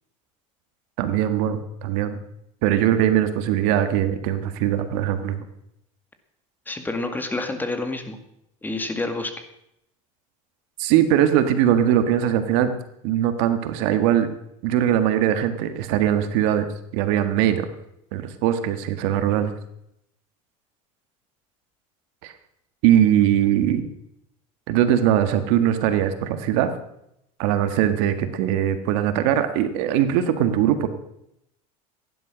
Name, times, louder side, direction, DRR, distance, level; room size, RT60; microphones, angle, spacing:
voice 1, 1.0-2.2 2.6-5.5 10.8-12.7 13.0-14.3 14.6-16.7 16.9-17.7 18.1-19.5 22.2-22.3 22.8-23.9 24.7-26.7 27.4-30.9, right 10 dB, 70° right, 9 dB, 1.7 m, -21 dB
voice 2, 6.7-8.2 8.6-9.3, left 2 dB, 10° left, 6 dB, 2.1 m, -28 dB
15.5 x 11.0 x 6.2 m, 0.79 s
supercardioid pair, 110°, 17 cm